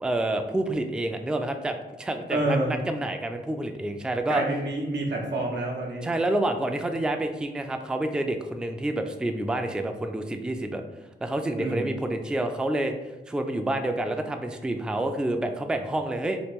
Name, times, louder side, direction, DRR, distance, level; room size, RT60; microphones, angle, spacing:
voice 1, 0.0-4.4 6.0-10.8 11.2-13.0 13.3-16.4, right 1 dB, 5° right, 5 dB, 0.3 m, -28 dB
voice 2, 2.3-2.8 4.3-6.1 11.6-11.9, right 2 dB, 90° right, -1 dB, 0.7 m, -28 dB
3.0 x 2.4 x 3.5 m, 1.1 s
cardioid pair, 50°, 18 cm